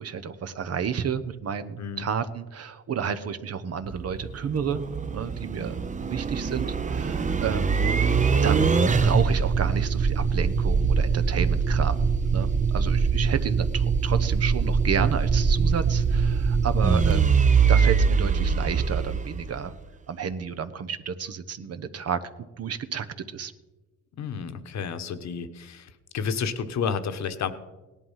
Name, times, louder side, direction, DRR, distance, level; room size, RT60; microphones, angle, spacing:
voice 1, 0.0-4.8 5.1-8.0 8.4-12.0 12.3-17.4 17.7-19.7 20.1-23.1 23.3-23.5, right 7 dB, 55° right, 11 dB, 1.0 m, -31 dB
sound 1, 3.8-19.8, right 5 dB, 25° right, 0.7 m, -23 dB
voice 2, 24.2-27.5, left 6 dB, 65° left, 10 dB, 1.3 m, -31 dB
17.5 x 11.0 x 5.7 m, 1.2 s
cardioid pair, 90°, 30 cm